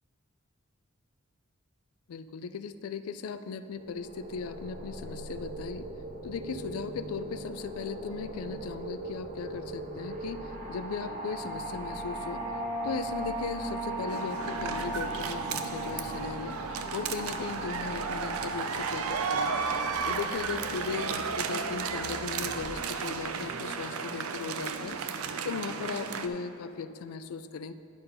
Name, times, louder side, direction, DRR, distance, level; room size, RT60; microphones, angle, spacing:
voice 1, 2.1-5.9 6.2-12.4 12.8-16.6 16.9-19.6 20.0-27.7, left 5 dB, 90° left, 12 dB, 0.4 m, -37 dB
sound 1, 3.7-22.6, right 1 dB, 40° right, 0.9 m, -40 dB
sound 2, 10.8-18.1, right 1 dB, 10° right, 0.8 m, -39 dB
sound 3, 14.1-26.3, right 5 dB, 85° right, 0.5 m, -34 dB
10.5 x 4.4 x 5.5 m, 2.7 s
head